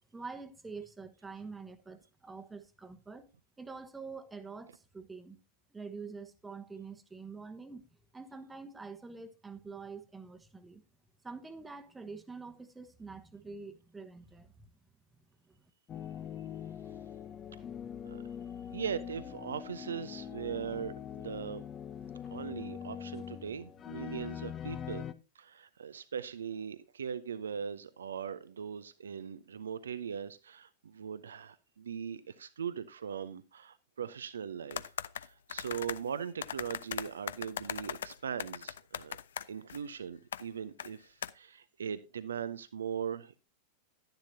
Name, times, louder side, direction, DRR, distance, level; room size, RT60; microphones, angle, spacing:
voice 1, 0.1-3.2 3.6-5.4 5.7-7.8 8.1-10.8 11.2-14.7 15.5-15.6, right 4 dB, 10° right, 1.1 m, -46 dB
sound 1, 15.9-25.1, left 9 dB, 25° left, 0.7 m, -43 dB
voice 2, 18.7-21.6 22.3-25.1 25.4-34.8 35.2-39.2 39.5-43.3, right 7 dB, 70° right, 0.6 m, -40 dB
sound 2, 34.7-36.0 36.4-39.8 40.3-40.4 40.8-40.9 41.2-41.3, left 9 dB, 65° left, 0.4 m, -39 dB
11.5 x 10.5 x 2.7 m
figure-of-eight pair, 90°, 0 cm